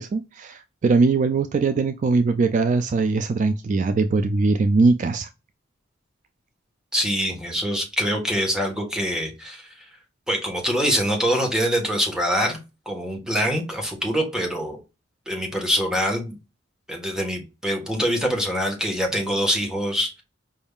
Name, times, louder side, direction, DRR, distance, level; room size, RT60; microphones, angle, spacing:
voice 1, 0.0-5.3, right 3 dB, 40° right, 0.3 m, -21 dB
voice 2, 6.9-9.7 10.3-12.6 12.8-14.8 15.3-16.3 16.9-20.2, equal, 5° right, 1.3 m, -24 dB
5.1 x 3.5 x 2.3 m
head